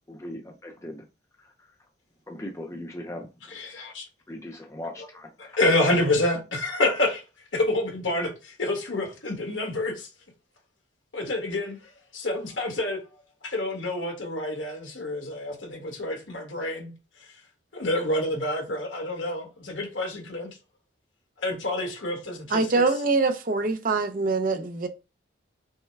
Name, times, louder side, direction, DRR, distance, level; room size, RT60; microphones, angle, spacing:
voice 1, 0.1-1.0 1.4-1.7 2.3-3.3 4.3-5.3, left 1 dB, 15° left, 0.5 m, -39 dB
voice 2, 3.5-4.0 5.4-7.2 7.5-10.1 11.1-13.0 13.4-16.9 17.2-17.3 17.7-20.5 21.4-22.8, left 1 dB, 70° left, 1.5 m, -28 dB
voice 3, 22.5-24.9, right 3 dB, 45° right, 0.5 m, -24 dB
5.4 x 2.2 x 3.3 m
head